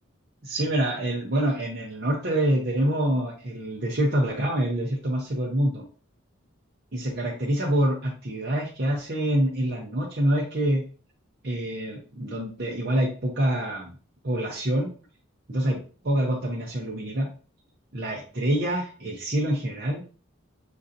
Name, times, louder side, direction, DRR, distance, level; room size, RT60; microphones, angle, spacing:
voice 1, 0.4-5.8 6.9-10.8 11.4-13.9 14.2-14.9 15.5-17.3 17.9-20.0, right 1 dB, 50° right, -3 dB, 0.7 m, -26 dB
6.2 x 2.5 x 2.7 m, 0.39 s
head